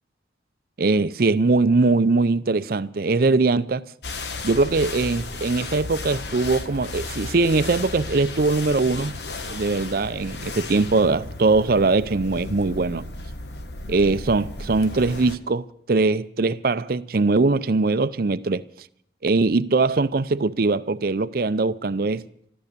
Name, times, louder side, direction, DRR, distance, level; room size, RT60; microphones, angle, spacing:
voice 1, 0.8-3.9 4.4-9.2 9.5-13.1 13.9-18.6 19.2-22.2, right 3 dB, 50° right, 0.5 m, -21 dB
sound 1, 4.0-15.4, left 3 dB, 65° left, 1.2 m, -34 dB
13.5 x 13.5 x 6.8 m
head